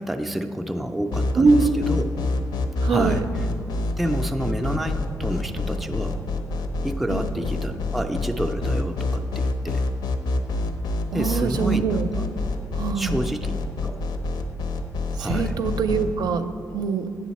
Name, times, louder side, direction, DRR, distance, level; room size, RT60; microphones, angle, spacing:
voice 1, 0.0-1.6 1.9-2.1 2.9-3.2 4.0-6.2 6.8-9.9 11.1-11.9 12.2-12.3 12.9-13.5 13.8-14.0 15.2-15.5, equal, ahead, 4 dB, 0.3 m, -29 dB
sound 1, 1.1-16.1, left 3 dB, 80° left, 0.6 m, -26 dB
voice 2, 1.4-1.7 2.8-3.2 7.1-7.3 11.1-12.1 12.7-13.2 15.1-16.4 16.7-17.1, right 5 dB, 75° right, 9 dB, 0.5 m, -23 dB
8.3 x 6.9 x 4.1 m, 2.4 s
wide cardioid pair, 170°, 7 cm